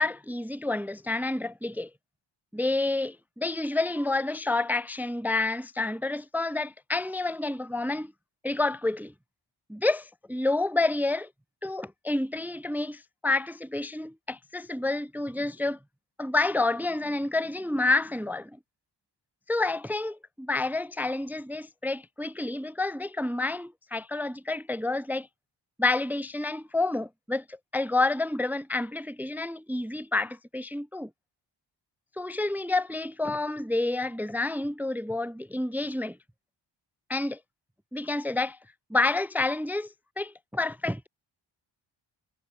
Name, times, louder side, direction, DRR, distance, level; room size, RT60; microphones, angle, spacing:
voice 1, 0.0-1.9 2.5-8.1 8.4-9.1 9.7-11.3 11.6-15.8 16.2-18.6 19.5-25.3 25.8-31.1 32.2-36.2 37.1-37.4 37.9-38.6 38.9-41.1, left 2 dB, 5° right, 0.3 m, -29 dB
wide cardioid pair, 165°, 47 cm